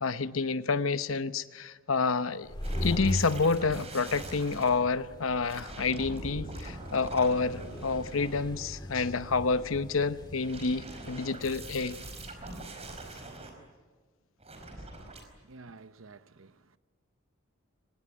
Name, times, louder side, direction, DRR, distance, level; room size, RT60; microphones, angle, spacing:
voice 1, 0.0-2.5 2.8-12.0, left 4 dB, 90° left, 0.9 m, -29 dB
sound 1, 2.3-12.8, equal, 20° left, 2.0 m, -40 dB
sound 2, 2.6-4.8 5.4-8.8 10.1-13.5 14.4-15.2, right 2 dB, 30° right, 4.8 m, -43 dB
voice 2, 15.2-16.8, right 3 dB, 80° right, 0.9 m, -52 dB
24.0 x 19.5 x 9.9 m
head